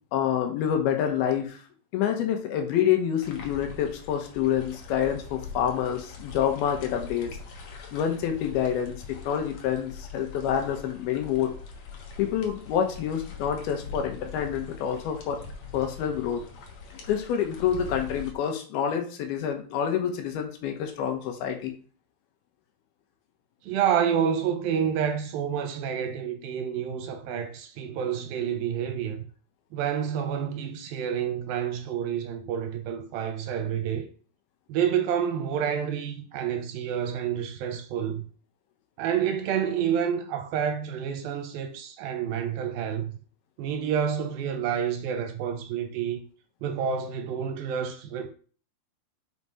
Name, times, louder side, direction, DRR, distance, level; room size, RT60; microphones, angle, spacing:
voice 1, 0.1-1.6 1.9-7.3 7.9-11.5 12.2-15.4 15.7-16.4 17.1-21.7, left 9 dB, 75° left, 2.8 m, -27 dB
sound 1, 3.2-18.3, left 4 dB, 60° left, 1.9 m, -42 dB
voice 2, 23.6-29.2 29.7-34.1 34.7-38.2 39.0-43.1 43.6-46.2 46.6-48.3, right 8 dB, 80° right, 2.3 m, -28 dB
5.8 x 5.5 x 4.9 m
omnidirectional pair, 4.6 m